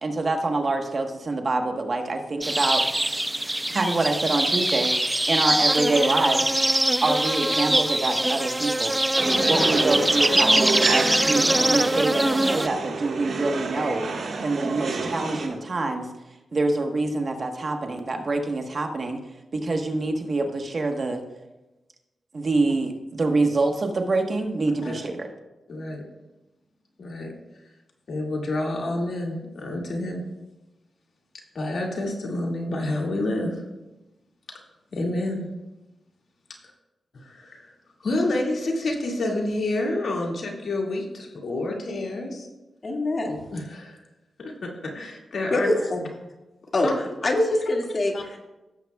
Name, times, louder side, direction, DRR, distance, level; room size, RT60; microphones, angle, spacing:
voice 1, 0.0-2.8 3.7-6.5 7.0-9.0 9.4-14.1 14.4-16.1 16.5-19.2 19.5-21.2 22.3-25.3, right 2 dB, 50° right, 3 dB, 1.2 m, -26 dB
sound 1, 2.4-12.7, right 1 dB, 15° right, 0.3 m, -23 dB
sound 2, 9.1-15.5, right 3 dB, 75° right, 1.6 m, -28 dB
voice 2, 9.3-9.7 24.8-24.9 25.7-26.0 27.0-27.3 28.1-30.3 31.5-33.6 34.9-35.5 37.3-37.7 38.0-42.5 43.5-44.0 44.4-45.7 46.8-46.9 48.1-48.2, left 2 dB, 65° left, 0 dB, 2.1 m, -28 dB
voice 3, 42.8-43.4 45.5-46.1 46.7-46.9 47.2-48.4, left 1 dB, 45° left, 0 dB, 2.0 m, -24 dB
16.5 x 7.5 x 2.3 m, 1.0 s
cardioid pair, 65°, 0 cm